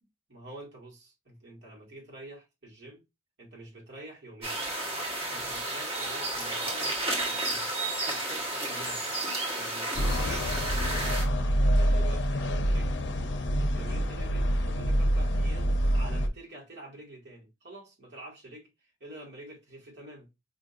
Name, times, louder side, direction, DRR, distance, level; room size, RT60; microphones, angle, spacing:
voice 1, 0.3-3.0 3.4-4.7 5.3-7.0 7.2-7.7 8.1-9.1 9.5-10.5 10.8-11.2 11.8-13.0 13.6-18.7 19.0-20.3, right 1 dB, 65° right, 1.9 m, -47 dB
sound 1, 4.4-11.2, right 2 dB, 30° right, 1.3 m, -32 dB
sound 2, 9.9-16.3, equal, 65° left, 0.6 m, -26 dB
5.0 x 2.7 x 2.5 m
head